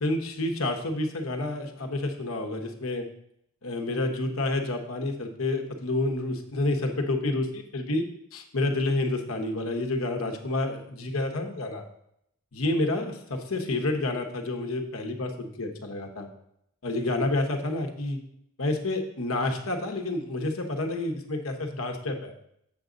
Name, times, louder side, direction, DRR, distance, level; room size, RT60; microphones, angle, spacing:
voice 1, 0.0-3.1 3.6-8.1 8.3-11.8 12.5-16.3 16.8-18.2 18.6-22.3, left 2 dB, 80° left, 4 dB, 1.2 m, -29 dB
7.9 x 3.9 x 6.2 m, 0.73 s
head